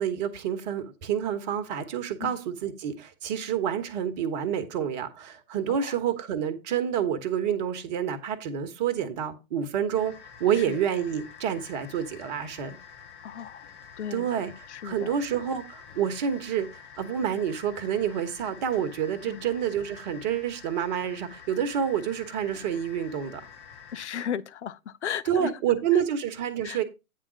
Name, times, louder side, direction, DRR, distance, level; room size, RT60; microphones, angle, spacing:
voice 1, 0.0-10.1 10.4-12.8 14.1-14.5 14.8-23.4 25.3-26.8, right 9 dB, 30° right, 1.2 m, -28 dB
sound 1, 9.9-24.1, left 7 dB, 15° left, 0.7 m, -48 dB
voice 2, 13.2-13.7 14.0-14.3 14.7-15.2 19.3-19.4 23.9-25.5 25.9-26.0 26.6-26.8, left 9 dB, 55° left, 0.7 m, -35 dB
9.2 x 3.7 x 6.1 m
figure-of-eight pair, 125°, 42 cm